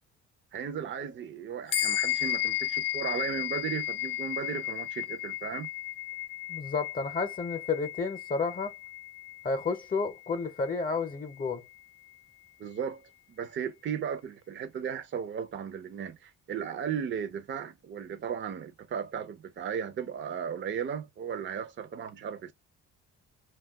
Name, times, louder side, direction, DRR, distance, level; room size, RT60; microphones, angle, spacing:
voice 1, 0.5-5.7 12.6-22.5, right 7 dB, 40° right, 0.5 m, -36 dB
sound 1, 1.7-11.4, left 13 dB, 85° left, 0.5 m, -34 dB
voice 2, 6.5-8.7 9.4-11.6, left 4 dB, 30° left, 0.7 m, -31 dB
2.3 x 2.3 x 3.4 m
cardioid pair, 90°, 30 cm